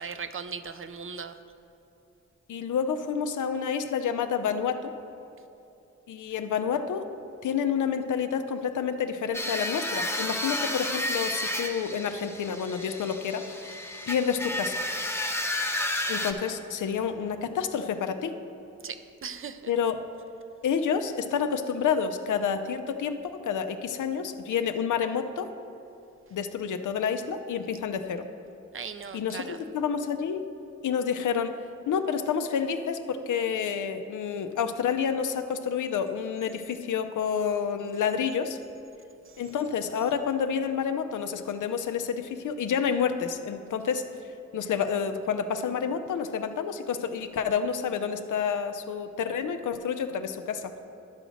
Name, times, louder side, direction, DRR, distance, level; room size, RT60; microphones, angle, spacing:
voice 1, 0.0-1.3 18.8-19.6 28.7-29.6, right 6 dB, 45° right, 10 dB, 0.5 m, -38 dB
voice 2, 2.5-4.9 6.1-7.1 7.4-13.7 14.1-14.8 16.1-18.4 19.7-20.1 20.6-25.5 26.3-28.3 29.1-30.4 30.8-31.6 31.9-38.6 39.4-44.0 44.5-50.7, left 7 dB, 85° left, 8 dB, 0.5 m, -29 dB
sound 1, 9.3-16.3, left 1 dB, 10° left, 0.7 m, -31 dB
11.5 x 3.9 x 6.3 m, 2.8 s
cardioid pair, 45°, 30 cm